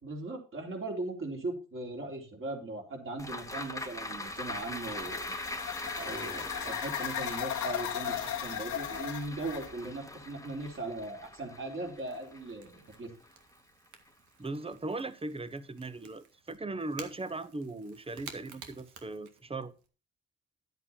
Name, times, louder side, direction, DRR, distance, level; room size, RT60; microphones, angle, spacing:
voice 1, 0.0-5.4 6.0-13.1, right 2 dB, 40° right, 3.8 m, -39 dB
sound 1, 3.2-13.7 14.1-14.2, left 2 dB, 10° left, 1.2 m, -41 dB
sound 2, 4.4-9.7, left 10 dB, 85° left, 1.6 m, -37 dB
Crackle / Crack, 10.7-19.9, right 7 dB, 75° right, 1.9 m, -53 dB
voice 2, 14.4-19.7, right 2 dB, 20° right, 1.0 m, -38 dB
11.0 x 8.1 x 4.3 m
cardioid pair, 90°, 30 cm